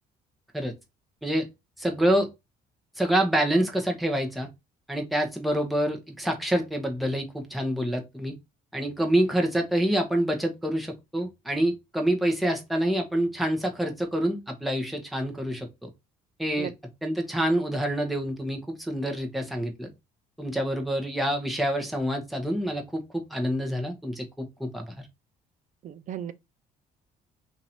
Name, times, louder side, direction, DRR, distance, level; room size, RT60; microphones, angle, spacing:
voice 1, 1.8-2.3 3.0-4.5 4.9-8.3 8.7-15.9 16.4-16.7 17.0-19.9 20.4-23.0 23.3-24.9, right 1 dB, ahead, 1.0 m, -27 dB
voice 2, 25.8-26.3, right 9 dB, 50° right, 0.4 m, -35 dB
2.9 x 2.7 x 4.3 m
cardioid pair, 110°, 17 cm